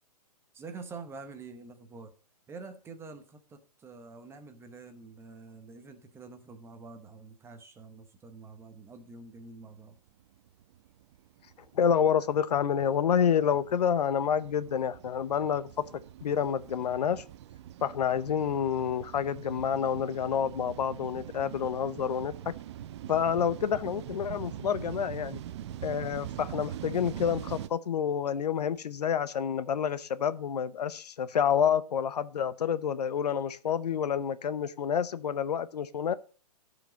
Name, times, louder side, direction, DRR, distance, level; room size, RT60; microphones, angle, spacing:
voice 1, 0.5-2.1 2.5-10.0, right 4 dB, 10° right, 1.0 m, -47 dB
sound 1, 10.0-27.7, right 12 dB, 45° right, 0.5 m, -43 dB
voice 2, 11.7-15.8 16.2-17.2 17.8-22.3 23.1-25.4 25.8-36.1, left 8 dB, 75° left, 0.8 m, -28 dB
12.5 x 5.0 x 5.2 m
hypercardioid pair, 140°, 20 cm